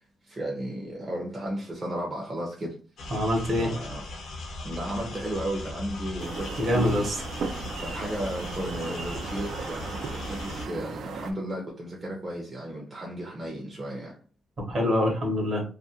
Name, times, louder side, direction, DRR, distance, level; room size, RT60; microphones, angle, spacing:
voice 1, 0.3-2.8 3.6-4.1 4.6-7.1 7.6-14.2, right 1 dB, 25° right, -2 dB, 0.6 m, -34 dB
sound 1, 3.0-10.7, left 2 dB, 75° left, 0.7 m, -38 dB
voice 2, 3.1-3.7 6.6-7.1 14.7-15.6, left 1 dB, 45° right, 0 dB, 0.9 m, -25 dB
sound 2, 6.2-11.3, right 4 dB, 70° right, 0.4 m, -37 dB
2.4 x 2.2 x 2.7 m, 0.39 s
cardioid pair, 130°, 0 cm